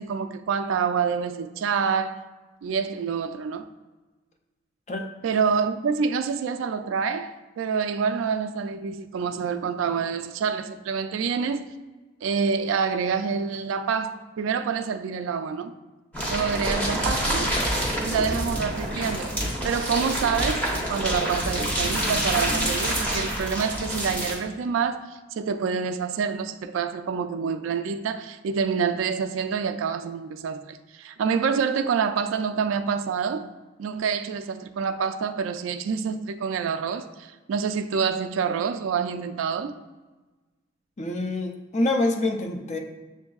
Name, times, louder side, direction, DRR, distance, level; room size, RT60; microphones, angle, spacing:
voice 1, 0.0-2.2 2.6-3.7 5.2-11.7 12.2-15.7 16.3-17.5 18.0-19.4 19.6-33.5 33.8-39.7, right 6 dB, 90° right, 0.3 m, -27 dB
sound 1, 16.1-24.4, right 1 dB, 10° left, 0.8 m, -27 dB
voice 2, 41.0-42.8, left 2 dB, 35° left, 0.5 m, -26 dB
7.1 x 2.6 x 2.3 m
head